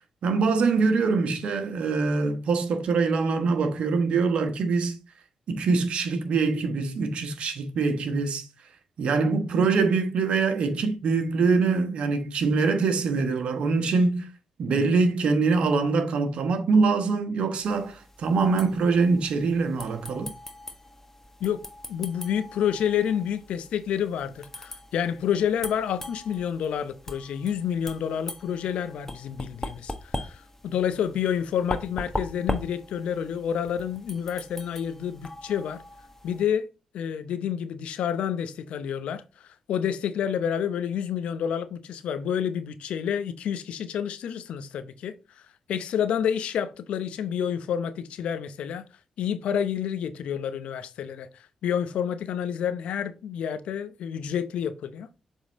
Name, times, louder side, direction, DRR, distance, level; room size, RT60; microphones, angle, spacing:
voice 1, 0.2-5.0 5.5-8.4 9.0-14.3 14.6-20.3, right 4 dB, 65° right, 1.2 m, -24 dB
sound 1, 17.6-36.5, left 1 dB, 15° left, 1.4 m, -40 dB
voice 2, 21.9-35.8 36.2-36.7 36.9-45.1 45.7-48.8 49.2-51.3 51.6-55.1, left 8 dB, 75° left, 0.7 m, -29 dB
7.2 x 3.7 x 4.1 m
hypercardioid pair, 40°, 2 cm